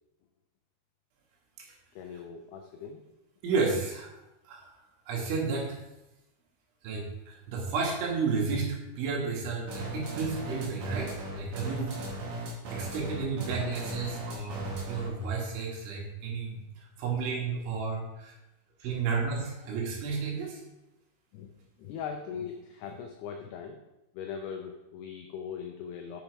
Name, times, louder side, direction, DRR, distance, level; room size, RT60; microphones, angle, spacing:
voice 1, 1.9-3.1 18.8-19.0 19.6-19.7 21.3-21.5 21.8-23.8 24.1-26.2, left 7 dB, 90° left, 4 dB, 2.3 m, -40 dB
voice 2, 3.4-4.1 4.5-4.7 5.1-5.8 6.8-11.9 12.7-16.6 17.0-18.3 18.8-20.6, right 4 dB, 80° right, -1 dB, 4.1 m, -32 dB
sound 1, 9.7-15.2, right 1 dB, 55° right, 2.2 m, -37 dB
7.1 x 6.9 x 4.6 m, 0.93 s
omnidirectional pair, 5.4 m